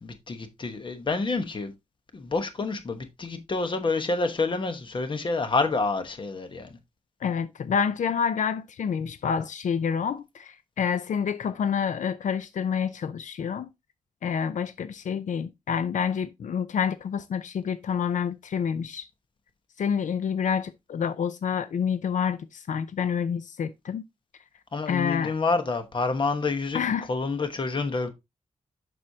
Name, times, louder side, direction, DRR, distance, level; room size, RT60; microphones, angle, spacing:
voice 1, 0.0-1.7 2.1-6.7 24.7-26.8 27.1-28.1, left 3 dB, 40° left, 1.1 m, -28 dB
voice 2, 7.2-13.7 14.2-19.0 19.8-24.0 24.9-25.3 26.7-27.1, left 7 dB, 90° left, 0.5 m, -28 dB
7.6 x 6.2 x 2.7 m
wide cardioid pair, 180°, 12 cm